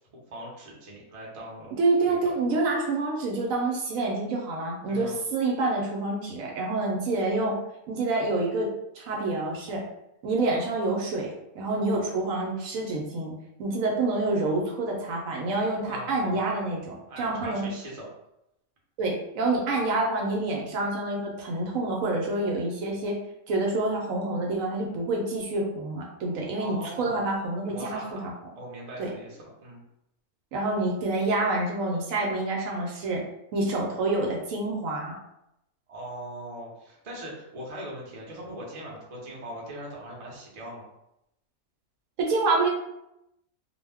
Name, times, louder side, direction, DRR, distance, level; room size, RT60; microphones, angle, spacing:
voice 1, 0.1-1.7 2.0-2.4 4.9-5.2 15.8-16.4 17.1-18.1 26.6-27.2 27.6-28.3 28.5-29.8 35.9-40.8, right 1 dB, 35° right, -3 dB, 0.6 m, -40 dB
voice 2, 1.8-7.6 7.9-9.8 10.2-13.3 13.6-17.7 19.0-23.2 23.5-28.3 29.0-29.1 30.5-33.2 33.5-35.2 42.2-42.7, right 2 dB, 70° right, -1 dB, 0.9 m, -27 dB
2.5 x 2.1 x 3.3 m, 0.84 s
omnidirectional pair, 1.6 m